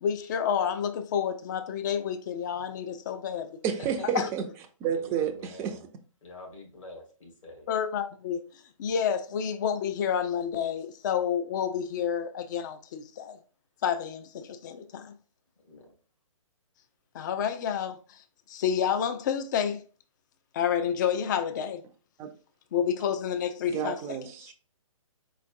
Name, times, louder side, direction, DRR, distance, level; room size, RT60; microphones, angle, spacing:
voice 1, 0.0-3.5 4.1-4.2 7.7-8.5 8.8-13.4 13.8-15.0 17.1-18.0 18.5-19.8 20.6-21.8 22.7-24.0, left 8 dB, 35° left, 0.5 m, -29 dB
voice 2, 3.6-4.4 4.8-5.8 22.2-22.3 23.7-24.5, right 8 dB, 15° right, 0.5 m, -30 dB
voice 3, 4.9-5.8 6.2-7.7 15.6-15.9, left 2 dB, 65° left, 2.0 m, -46 dB
4.3 x 4.0 x 2.6 m
figure-of-eight pair, 140°, 18 cm